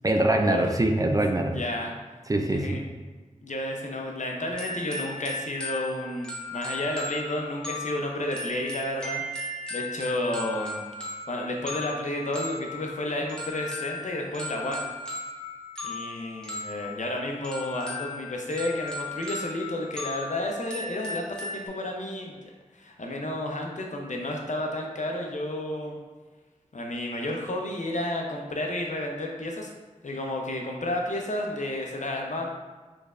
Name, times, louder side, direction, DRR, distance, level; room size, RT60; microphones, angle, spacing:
voice 1, 0.0-1.6 2.3-2.8, right 1 dB, 25° right, 4 dB, 0.4 m, -23 dB
voice 2, 1.5-1.9 2.5-2.8 3.4-9.2 9.7-10.8 11.3-14.9 15.8-26.0 26.7-29.7 30.0-32.5, left 1 dB, 65° left, 1 dB, 0.6 m, -31 dB
sound 1, 4.5-21.7, left 2 dB, 5° left, 1.0 m, -37 dB
4.3 x 3.3 x 2.5 m, 1.3 s
wide cardioid pair, 50°, 13 cm